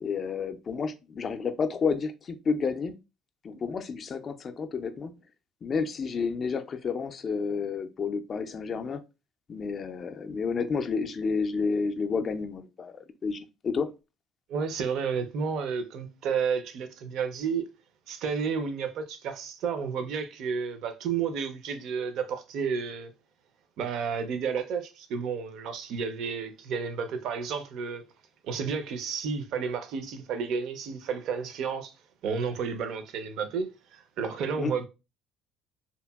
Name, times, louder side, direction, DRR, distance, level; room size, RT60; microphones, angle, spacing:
voice 1, 0.0-3.0 3.4-5.1 5.6-9.0 9.5-13.9 34.6-34.7, left 5 dB, 40° left, 0.3 m, -30 dB
voice 2, 14.5-17.7 18.1-23.1 23.8-28.0 28.4-31.9 32.2-34.9, right 6 dB, 65° right, 0.5 m, -31 dB
2.8 x 2.5 x 2.2 m
cardioid pair, 110°, 0 cm